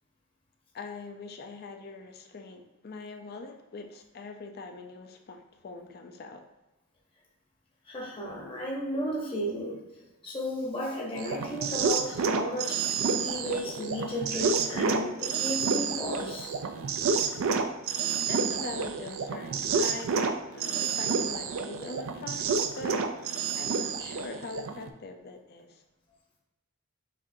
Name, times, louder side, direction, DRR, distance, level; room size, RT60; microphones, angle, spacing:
voice 1, 0.7-6.4 18.2-25.8, left 3 dB, 45° left, 4 dB, 0.4 m, -42 dB
voice 2, 7.8-16.5, equal, 25° left, -4 dB, 0.8 m, -34 dB
sound 1, 11.2-24.9, right 5 dB, 65° right, 0.4 m, -29 dB
6.5 x 2.6 x 2.6 m, 1.0 s
head